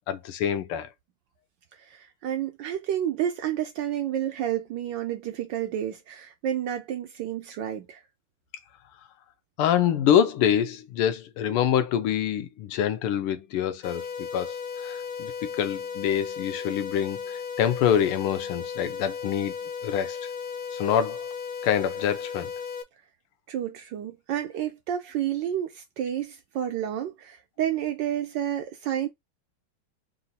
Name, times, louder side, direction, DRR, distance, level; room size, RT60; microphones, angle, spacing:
voice 1, 0.1-0.9 9.6-19.5 19.8-20.2 20.7-21.3 21.6-22.5, left 9 dB, 85° left, 1.6 m, -26 dB
voice 2, 1.8-8.0 23.5-29.1, right 10 dB, 75° right, 1.1 m, -30 dB
sound 1, 13.8-22.8, left 6 dB, 45° left, 1.1 m, -35 dB
4.0 x 2.6 x 3.9 m
omnidirectional pair, 2.4 m